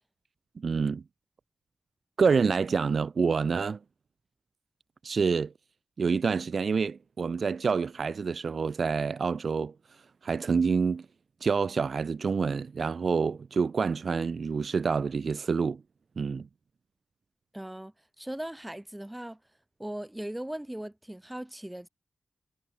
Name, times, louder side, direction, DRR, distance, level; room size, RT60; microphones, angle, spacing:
voice 1, 0.6-1.0 2.2-3.8 5.0-5.5 6.0-9.7 10.2-11.1 11.4-15.8 16.2-16.5, right 5 dB, 60° right, 0.5 m, -27 dB
voice 2, 17.5-19.4 19.8-21.9, right 1 dB, 10° right, 1.0 m, -39 dB
wide cardioid pair, 100°, 0 cm